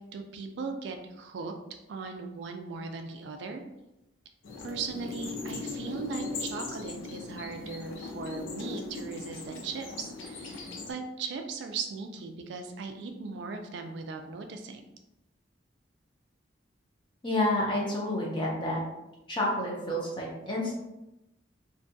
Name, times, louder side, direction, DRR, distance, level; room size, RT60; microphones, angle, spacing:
voice 1, 0.1-1.5 1.9-3.6 4.6-14.8, right 4 dB, 70° right, 5 dB, 0.3 m, -38 dB
sound 1, 4.4-10.9, left 4 dB, 85° left, 0.5 m, -39 dB
voice 2, 17.2-18.8 19.3-20.8, left 1 dB, 25° left, -3 dB, 0.5 m, -29 dB
2.5 x 2.3 x 2.6 m, 0.92 s
head